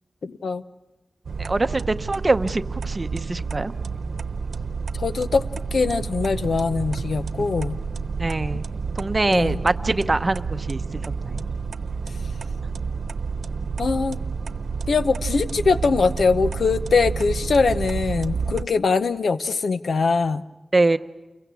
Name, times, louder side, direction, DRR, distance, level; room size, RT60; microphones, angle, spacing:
voice 1, 0.2-0.6 5.0-5.4 5.7-7.8 9.3-9.6 13.8-14.2 14.9-20.4, left 4 dB, 80° left, 12 dB, 0.8 m, -22 dB
sound 1, 1.2-18.6, right 5 dB, 80° right, 0.9 m, -29 dB
voice 2, 1.4-3.7 8.2-8.7 9.0-11.4 20.7-21.0, right 2 dB, 30° right, 10 dB, 0.8 m, -23 dB
29.5 x 23.0 x 6.2 m, 1.1 s
wide cardioid pair, 110°, 0 cm